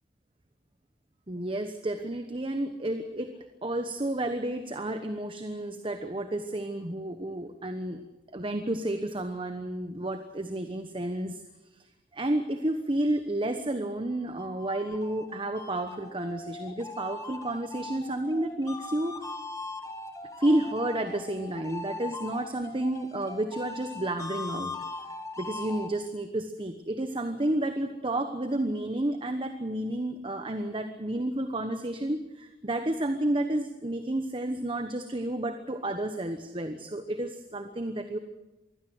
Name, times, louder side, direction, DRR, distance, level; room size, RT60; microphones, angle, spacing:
voice 1, 1.3-3.3 3.6-8.0 8.3-11.4 12.1-19.3 20.4-24.7 25.4-38.2, right 1 dB, 30° right, 7 dB, 1.1 m, -31 dB
sound 1, 14.1-25.9, left 3 dB, 15° left, 1.5 m, -40 dB
23.5 x 16.5 x 7.9 m, 1.1 s
head